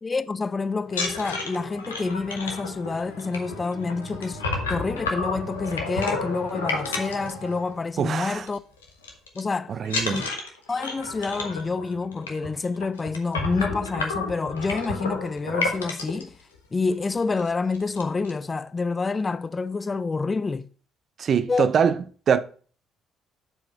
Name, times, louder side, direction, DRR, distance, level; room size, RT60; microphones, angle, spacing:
voice 1, 0.0-4.4 4.7-8.6 9.3-9.8 10.0-10.2 10.7-16.4 16.7-20.7 21.5-21.7, left 4 dB, 30° left, 0.5 m, -28 dB
sound 1, 0.8-8.0 8.3-8.6 8.8-9.4 9.8-16.2 16.9-17.0 17.3-17.5 17.7-18.3, left 3 dB, 85° left, 1.3 m, -31 dB
voice 2, 8.0-8.5 9.7-10.2 21.2-21.9 22.3-22.4, right 7 dB, 50° right, 0.7 m, -23 dB
7.9 x 4.8 x 5.3 m
figure-of-eight pair, 50°, 0 cm